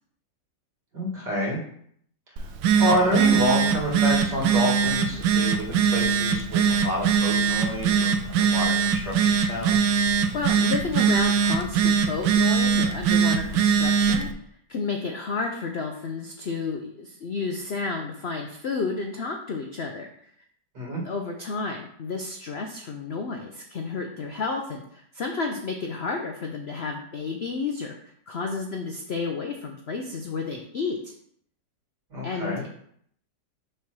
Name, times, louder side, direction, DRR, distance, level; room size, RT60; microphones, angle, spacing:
voice 1, 0.9-1.6 2.8-10.0 20.7-21.0 32.1-32.6, equal, 65° right, -4 dB, 2.8 m, -28 dB
Telephone, 2.4-14.3, right 6 dB, 85° right, 1.3 m, -22 dB
voice 2, 10.3-14.3 14.7-20.1 21.0-28.0 28.3-31.1 32.2-32.7, left 4 dB, 75° left, 3 dB, 0.5 m, -31 dB
6.7 x 3.3 x 6.0 m, 0.67 s
omnidirectional pair, 1.9 m